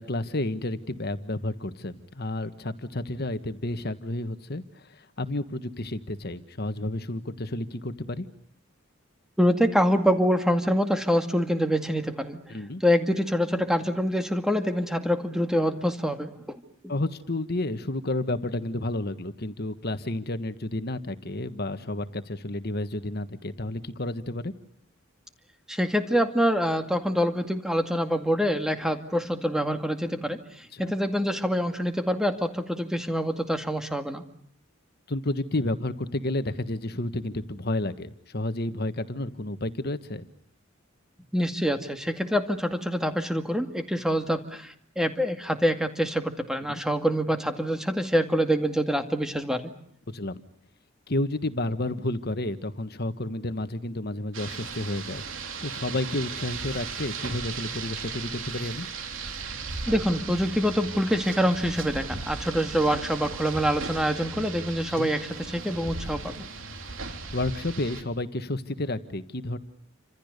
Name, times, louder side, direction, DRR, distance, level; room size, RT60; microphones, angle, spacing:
voice 1, 0.0-8.3 12.5-12.8 16.9-24.5 30.7-30.9 35.1-40.2 46.7-46.8 50.1-50.4 51.1-55.2 55.6-58.9 65.0-65.1 67.3-69.6, left 1 dB, 50° left, 11 dB, 1.6 m, -31 dB
voice 2, 9.4-12.4 12.8-16.3 25.7-34.2 41.3-49.7 59.9-66.5, equal, 5° right, 6 dB, 2.2 m, -25 dB
Rain, 54.3-68.0, right 4 dB, 65° right, 3.8 m, -37 dB
29.5 x 26.5 x 6.7 m, 0.65 s
head